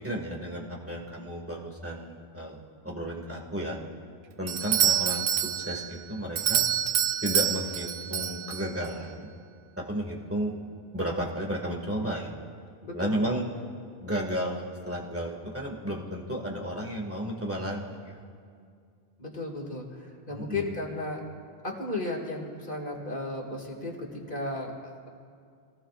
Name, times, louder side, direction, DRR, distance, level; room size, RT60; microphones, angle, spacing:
voice 1, 0.0-3.8 4.4-5.3 5.6-6.6 7.2-9.3 9.8-10.5 10.9-12.3 12.9-13.4 14.0-18.2 20.3-20.6, equal, 15° right, -1 dB, 1.8 m, -33 dB
Doorbell, 4.5-8.9, right 10 dB, 80° right, 0.8 m, -27 dB
voice 2, 12.8-13.2 19.2-21.2 21.6-25.1, left 2 dB, 55° left, 0 dB, 2.4 m, -35 dB
27.5 x 18.5 x 2.5 m, 2.2 s
omnidirectional pair, 1.1 m